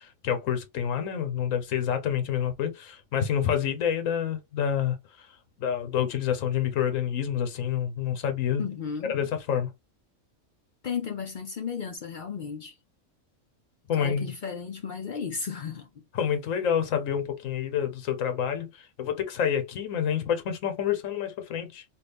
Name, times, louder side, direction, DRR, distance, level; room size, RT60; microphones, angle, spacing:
voice 1, 0.0-5.0 5.6-8.6 9.1-9.7 13.9-14.3 16.2-21.8, left 8 dB, 80° left, 1.2 m, -28 dB
voice 2, 8.6-9.2 10.8-12.7 13.9-15.9, left 6 dB, 60° left, 0.5 m, -34 dB
3.5 x 2.4 x 3.3 m
omnidirectional pair, 1.4 m